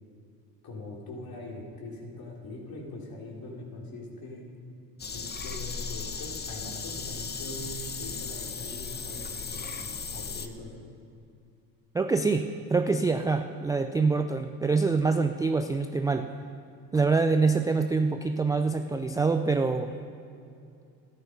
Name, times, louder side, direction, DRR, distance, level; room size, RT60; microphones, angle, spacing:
voice 1, 0.6-4.5 5.1-10.8, left 1 dB, 45° left, -2 dB, 3.6 m, -42 dB
sound 1, 5.0-10.5, left 5 dB, 20° left, 0.9 m, -36 dB
voice 2, 11.9-16.3 16.9-19.9, right 4 dB, 10° right, 6 dB, 0.3 m, -25 dB
13.5 x 11.0 x 5.4 m, 2.5 s
hypercardioid pair, 70°, 49 cm